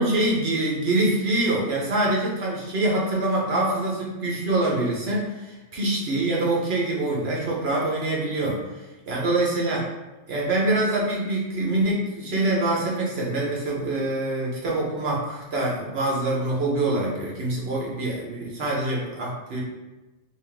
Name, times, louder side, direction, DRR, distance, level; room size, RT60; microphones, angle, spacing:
voice 1, 0.0-8.6 9.1-9.8 10.3-19.6, right 2 dB, 60° right, -3 dB, 1.1 m, -25 dB
4.0 x 2.4 x 3.4 m, 1.1 s
omnidirectional pair, 1.3 m